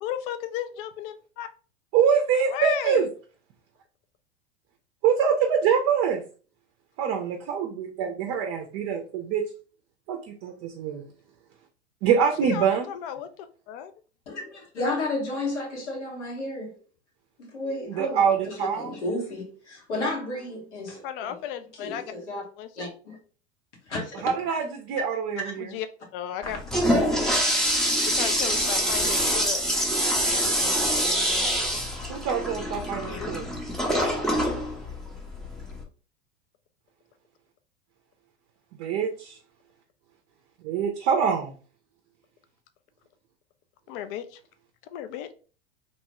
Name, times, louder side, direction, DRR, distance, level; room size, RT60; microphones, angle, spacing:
voice 1, 0.0-1.5 2.5-3.1 12.4-13.3 13.7-13.9 21.0-22.0 22.6-22.9 25.6-25.9 26.1-26.6 27.0-27.2 28.1-29.6 33.1-33.5 43.9-44.4 44.9-45.3, left 10 dB, 55° left, 0.4 m, -34 dB
voice 2, 1.9-3.1 5.0-6.2 7.0-9.5 10.1-11.0 12.0-12.9 17.9-19.0 24.2-25.7 32.1-33.5 38.8-39.4 40.6-41.5, right 7 dB, 40° right, 0.5 m, -25 dB
voice 3, 14.3-16.7 17.4-21.4 21.7-22.4 22.8-23.2 23.9-24.6, left 2 dB, 85° left, 1.2 m, -32 dB
Toilet flush, 26.4-35.8, equal, ahead, 0.5 m, -25 dB
2.9 x 2.2 x 2.9 m
hypercardioid pair, 100°, 34 cm